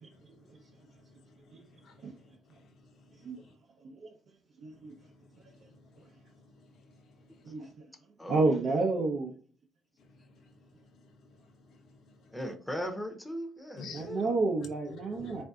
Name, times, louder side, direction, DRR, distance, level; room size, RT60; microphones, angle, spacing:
voice 1, 1.5-2.7 3.4-3.5 4.9-5.0 6.8-6.9 7.3-7.4 11.0-11.1 11.7-11.8 12.1-12.2 13.8-14.1 14.9-15.4, left 4 dB, 70° left, 0.8 m, -49 dB
voice 2, 4.6-4.9 7.5-7.7 8.3-9.3 13.9-15.4, right 3 dB, 65° right, 0.6 m, -29 dB
voice 3, 8.2-8.8 12.3-14.4, equal, 5° left, 0.7 m, -38 dB
3.5 x 2.6 x 2.3 m
cardioid pair, 90°, 0 cm